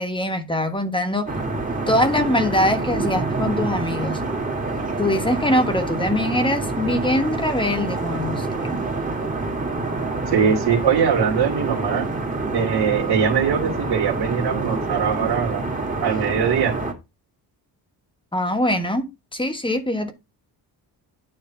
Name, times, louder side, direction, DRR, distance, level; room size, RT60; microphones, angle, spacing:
voice 1, 0.0-1.3 1.9-4.2 5.0-8.7 18.3-20.1, left 1 dB, 15° left, 1.2 m, -23 dB
sound 1, 1.3-16.9, right 3 dB, 20° right, 1.8 m, -27 dB
voice 2, 10.3-12.1 12.5-15.7 16.0-16.7, right 7 dB, 85° right, 2.2 m, -21 dB
9.3 x 3.3 x 5.6 m
cardioid pair, 110°, 39 cm